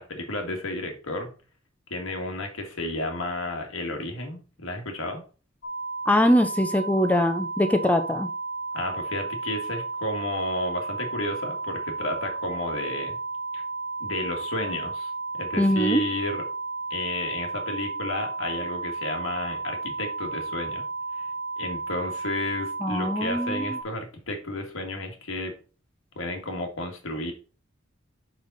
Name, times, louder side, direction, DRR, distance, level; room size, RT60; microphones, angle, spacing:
voice 1, 0.0-1.3 1.9-5.2 8.7-13.2 13.5-13.6 14.0-16.4 16.9-20.8 21.2-21.3 21.6-25.5 26.1-27.3, left 1 dB, 85° left, 3 dB, 1.7 m, -32 dB
sound 1, 5.6-23.8, right 3 dB, 55° left, 0.7 m, -33 dB
voice 2, 6.1-8.3 15.6-16.0 22.8-23.7, left 1 dB, 5° left, 6 dB, 0.5 m, -22 dB
5.3 x 4.9 x 4.0 m, 0.35 s
head